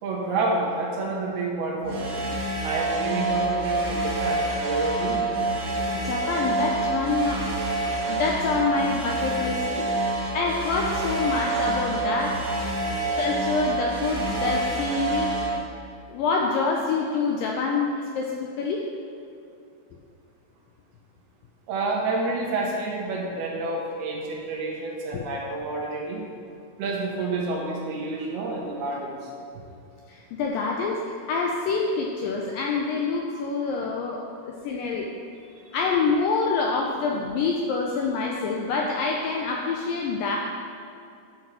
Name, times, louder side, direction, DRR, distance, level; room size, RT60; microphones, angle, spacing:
voice 1, 0.0-2.2 2.6-5.3 21.7-26.2 26.8-29.3 35.6-35.8, right 3 dB, 75° right, -2 dB, 3.3 m, -29 dB
sound 1, 1.8-15.5, right 2 dB, 60° right, 3.3 m, -27 dB
voice 2, 5.9-7.5 8.1-9.9 10.3-12.4 13.1-15.3 16.1-18.8 25.1-25.2 30.1-35.1 35.7-40.4, left 4 dB, 85° left, -1 dB, 2.0 m, -26 dB
10.5 x 6.6 x 4.6 m, 2.5 s
omnidirectional pair, 4.7 m